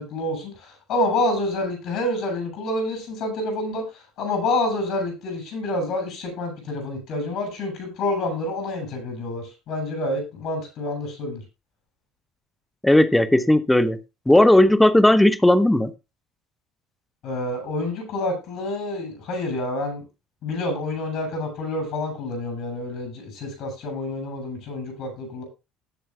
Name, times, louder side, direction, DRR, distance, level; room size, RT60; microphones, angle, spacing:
voice 1, 0.0-11.4 17.2-20.0 20.4-25.4, left 2 dB, 60° left, 5 dB, 7.7 m, -28 dB
voice 2, 12.8-14.0 14.3-15.9, left 1 dB, 10° left, 11 dB, 1.2 m, -16 dB
19.5 x 7.9 x 2.4 m, 0.27 s
hypercardioid pair, 60°, 0 cm